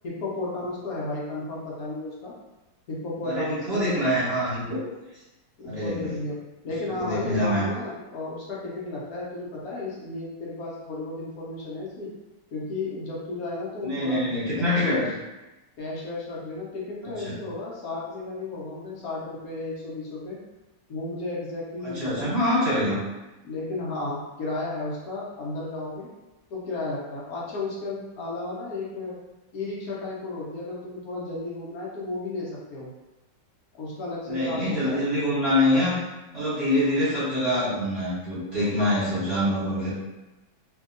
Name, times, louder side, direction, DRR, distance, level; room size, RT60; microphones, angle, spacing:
voice 1, 0.0-2.3 2.9-4.0 5.6-12.1 12.5-15.1 15.8-20.4 20.9-22.3 23.4-26.1 26.5-29.1 29.5-32.9 33.8-35.0, left 2 dB, 65° left, -5 dB, 1.0 m, -33 dB
voice 2, 3.2-4.8 5.6-6.1 7.0-7.7 13.8-15.1 17.0-17.3 21.8-23.0 34.3-36.0 36.3-39.9, left 1 dB, 40° right, -10 dB, 1.1 m, -25 dB
2.7 x 2.7 x 2.5 m, 1.0 s
omnidirectional pair, 2.0 m